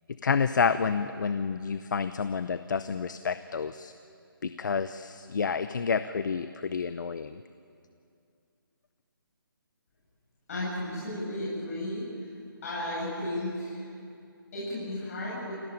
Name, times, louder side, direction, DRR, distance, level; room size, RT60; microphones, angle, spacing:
voice 1, 0.2-3.9 4.4-7.4, left 5 dB, 55° left, 12 dB, 0.8 m, -29 dB
voice 2, 10.5-12.4 12.6-13.9 14.5-15.5, left 1 dB, 40° left, -7 dB, 7.6 m, -34 dB
27.5 x 17.5 x 8.9 m, 2.5 s
hypercardioid pair, 165°, 12 cm